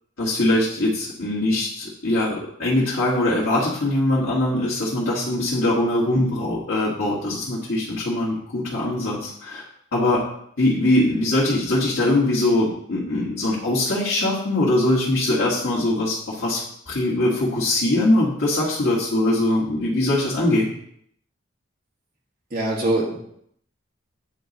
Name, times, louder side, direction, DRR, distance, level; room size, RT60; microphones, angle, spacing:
voice 1, 0.2-9.6 9.9-10.3 10.6-20.7, left 1 dB, 80° left, -9 dB, 1.7 m, -22 dB
voice 2, 22.5-23.2, right 1 dB, 45° right, -4 dB, 1.7 m, -23 dB
9.0 x 3.2 x 4.0 m, 0.69 s
head